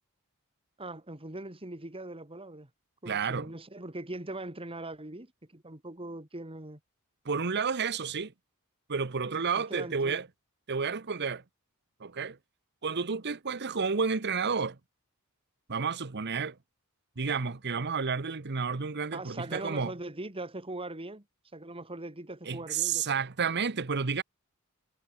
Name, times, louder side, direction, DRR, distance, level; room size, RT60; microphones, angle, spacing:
voice 1, 0.8-2.7 3.0-6.8 9.3-10.2 19.1-21.2 21.5-23.1, right 2 dB, 25° right, 2.5 m, -41 dB
voice 2, 3.1-3.5 7.2-8.3 8.9-10.3 10.7-11.4 12.0-12.4 12.8-14.8 15.7-16.5 17.2-19.9 22.5-24.2, right 5 dB, 50° right, 1.0 m, -31 dB
head